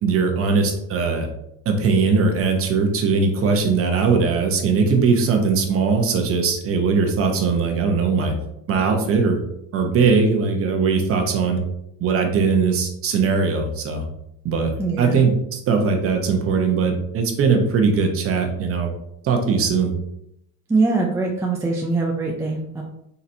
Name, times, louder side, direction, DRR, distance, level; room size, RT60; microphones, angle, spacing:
voice 1, 0.0-1.3 1.6-8.3 8.7-9.4 9.7-11.6 12.0-14.0 14.4-14.7 15.0-18.9 19.2-19.9, right 5 dB, 35° right, 3 dB, 0.9 m, -20 dB
voice 2, 14.8-15.2 20.7-22.8, right 3 dB, 10° right, -1 dB, 0.3 m, -22 dB
4.3 x 3.9 x 2.6 m, 0.79 s
cardioid pair, 135°, 38 cm